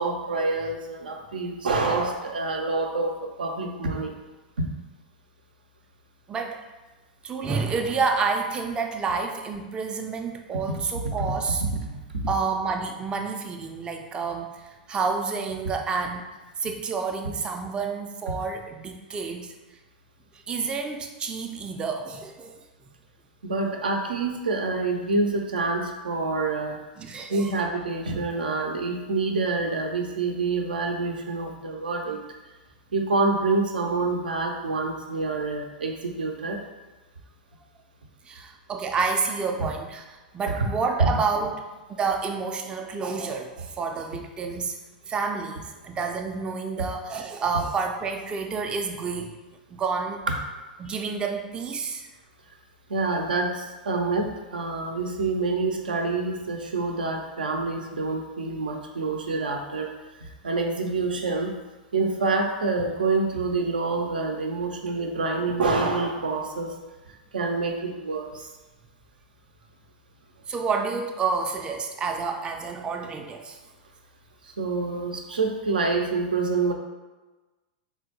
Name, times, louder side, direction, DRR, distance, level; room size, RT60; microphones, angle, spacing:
voice 1, 0.0-4.2 4.6-4.7 10.7-10.8 11.0-11.3 23.4-26.8 27.3-32.2 32.9-36.6 40.5-40.7 41.0-41.1 52.9-59.9 60.2-61.5 61.9-66.7 67.3-68.5 74.4-76.7, right 3 dB, 85° right, 3 dB, 0.4 m, -27 dB
voice 2, 6.3-6.6 7.2-11.6 12.3-16.2 16.6-19.5 20.5-22.6 27.0-27.5 38.2-40.0 40.3-41.6 42.0-44.8 45.1-49.3 49.7-50.2 50.8-52.1 70.5-73.6, right 5 dB, 20° right, 3 dB, 0.3 m, -29 dB
3.7 x 2.1 x 2.7 m, 1.2 s
hypercardioid pair, 105°, 5 cm